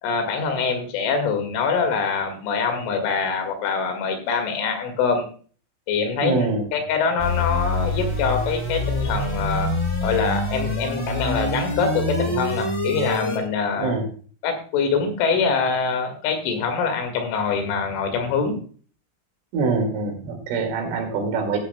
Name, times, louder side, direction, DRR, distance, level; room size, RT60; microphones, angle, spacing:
voice 1, 0.0-5.3 5.9-9.7 10.0-14.0 14.4-18.6, left 5 dB, 75° left, 6 dB, 4.3 m, -24 dB
voice 2, 6.2-6.7 13.8-14.1 19.5-21.6, right 4 dB, 75° right, 3 dB, 4.7 m, -24 dB
sound 1, 7.2-13.4, left 2 dB, 15° left, 1.1 m, -26 dB
15.5 x 10.5 x 2.2 m, 0.42 s
omnidirectional pair, 5.7 m